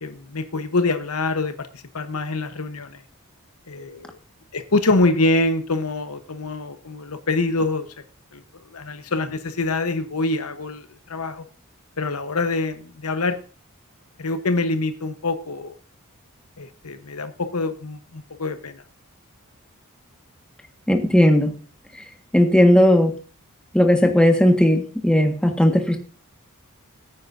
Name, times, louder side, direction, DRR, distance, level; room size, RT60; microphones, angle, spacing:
voice 1, 0.0-3.0 3.7-4.2 4.5-7.9 8.3-11.4 12.0-13.4 14.2-15.8 16.6-18.8, left 2 dB, 75° left, 9 dB, 1.0 m, -25 dB
voice 2, 20.9-21.5 22.3-23.1 23.7-26.0, left 1 dB, 5° left, 3 dB, 1.5 m, -16 dB
18.0 x 9.4 x 2.6 m, 0.36 s
head